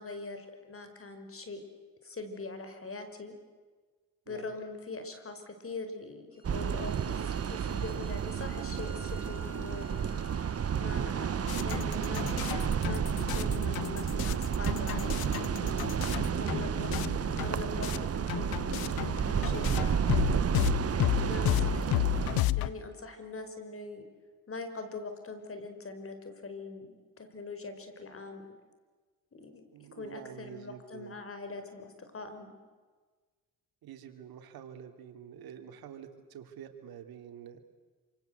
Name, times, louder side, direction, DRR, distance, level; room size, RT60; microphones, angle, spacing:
voice 1, 0.0-1.6 2.0-3.3 4.3-9.9 10.6-12.2 12.8-13.0 13.3-15.9 16.3-17.2 17.4-20.0 21.2-21.9 22.6-24.0 24.5-28.4 29.3-32.5, left 3 dB, 35° left, 8 dB, 5.1 m, -42 dB
Bowed string instrument, 6.3-11.7, equal, 15° right, 6.6 m, -53 dB
sound 1, 6.4-22.4, right 8 dB, 40° right, 1.1 m, -31 dB
sound 2, 11.5-18.0 18.3-22.7, left 15 dB, 80° left, 0.9 m, -33 dB
voice 2, 29.7-31.1 33.8-37.6, right 9 dB, 80° right, 7 dB, 3.1 m, -48 dB
27.0 x 26.5 x 8.0 m, 1.4 s
cardioid pair, 80°, 36 cm